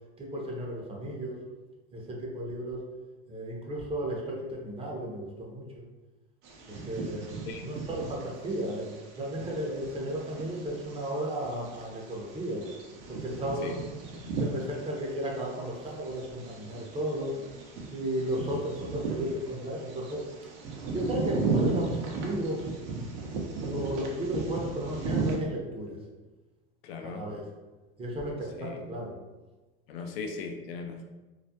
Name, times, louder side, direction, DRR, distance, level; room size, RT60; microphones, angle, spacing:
voice 1, 0.2-1.4 1.9-2.8 3.3-5.6 6.7-7.3 7.6-8.9 9.2-12.6 13.1-13.9 14.4-17.3 17.9-20.2 20.9-22.6 23.3-26.0 27.0-27.4 28.0-29.1, right 1 dB, 20° right, -2 dB, 0.6 m, -34 dB
Bird vocalization bird call bird song, 6.4-25.4, right 4 dB, 65° right, 0.6 m, -36 dB
voice 2, 26.8-27.3 28.6-28.8 29.9-31.0, left 4 dB, 85° left, 4 dB, 0.5 m, -38 dB
2.4 x 2.1 x 2.7 m, 1.2 s
supercardioid pair, 110°, 29 cm